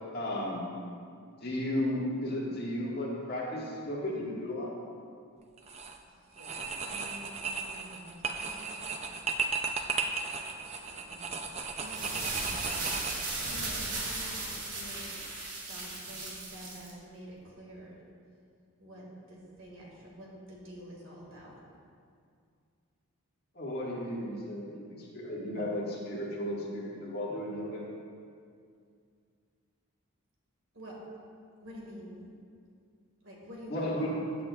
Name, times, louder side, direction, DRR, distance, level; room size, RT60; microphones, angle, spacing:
voice 1, 0.1-0.7 1.4-4.7 23.5-27.8 33.7-34.1, left 1 dB, 45° left, -5 dB, 1.8 m, -34 dB
sound 1, 5.6-6.0 6.4-13.6, right 4 dB, 30° right, 0.5 m, -35 dB
voice 2, 6.3-9.3 9.8-10.0 10.5-18.0 18.8-21.6 30.7-30.9 31.6-32.3 33.2-34.2, equal, 65° right, -3 dB, 2.2 m, -49 dB
sound 2, 11.7-16.9, right 2 dB, 85° right, 1.9 m, -36 dB
15.0 x 7.6 x 2.5 m, 2.3 s
head